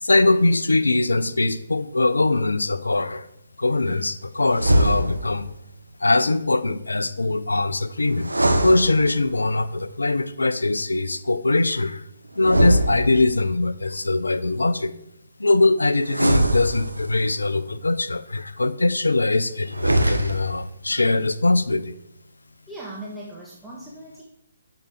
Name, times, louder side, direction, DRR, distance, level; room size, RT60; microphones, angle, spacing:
voice 1, 0.0-3.3 3.6-5.5 6.0-12.0 12.4-14.9 15.4-21.9, left 2 dB, 80° left, 14 dB, 0.8 m, -22 dB
sound 1, 4.5-5.5 8.2-9.5 12.4-13.6 16.1-17.3 19.7-20.7, right 1 dB, 85° right, 1.2 m, -22 dB
voice 2, 22.7-24.2, right 1 dB, ahead, -6 dB, 1.6 m, -38 dB
10.5 x 7.0 x 4.7 m, 0.82 s
figure-of-eight pair, 140°, 0 cm